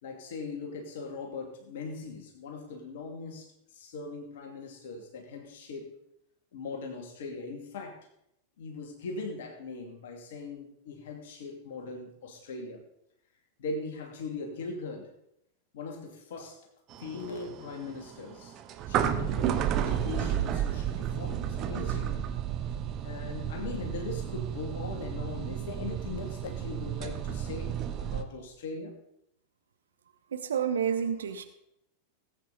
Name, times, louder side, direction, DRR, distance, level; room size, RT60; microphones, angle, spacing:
voice 1, 0.0-5.9 6.5-8.0 8.6-12.8 13.6-15.1 15.7-16.7 17.0-18.6 18.9-22.2 23.0-27.7 28.0-29.0, left 3 dB, 55° left, 3 dB, 2.5 m, -40 dB
sound 1, 16.9-28.2, right 10 dB, 35° right, 1.1 m, -32 dB
voice 2, 30.3-31.4, right 7 dB, 65° right, 9 dB, 0.9 m, -29 dB
19.0 x 8.6 x 4.1 m, 0.80 s
figure-of-eight pair, 90°, 0 cm